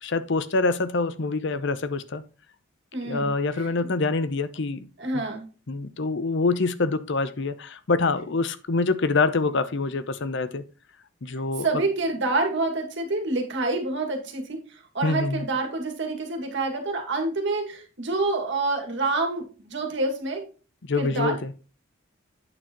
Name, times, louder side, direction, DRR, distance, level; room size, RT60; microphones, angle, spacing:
voice 1, 0.0-2.2 3.0-4.9 5.1-5.2 5.7-10.6 11.2-11.7 15.0-15.5 20.9-21.6, left 3 dB, 65° left, 13 dB, 0.7 m, -25 dB
voice 2, 2.9-3.3 5.0-5.5 11.6-14.6 14.9-20.4 21.0-21.4, right 2 dB, 65° right, 3 dB, 2.1 m, -27 dB
8.8 x 6.7 x 3.0 m, 0.35 s
head